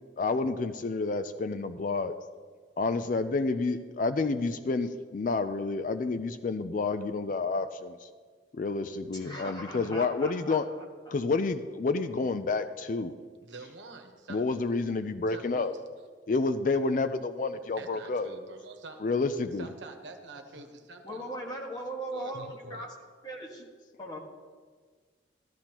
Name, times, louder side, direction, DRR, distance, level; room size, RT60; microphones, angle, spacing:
voice 1, 0.2-2.1 2.8-8.0 8.6-10.6 11.1-13.1 14.3-15.7 16.3-18.3 19.0-19.7, left 3 dB, 45° left, 11 dB, 0.4 m, -29 dB
voice 2, 9.1-10.6 21.0-22.9 23.2-23.6 24.0-24.2, right 1 dB, 20° left, 0 dB, 1.5 m, -39 dB
voice 3, 13.4-14.4 15.3-15.7 17.8-19.0 19.5-21.3 21.7-21.8 22.1-22.9, right 3 dB, 75° right, 5 dB, 1.1 m, -46 dB
13.0 x 12.5 x 3.0 m, 1.6 s
head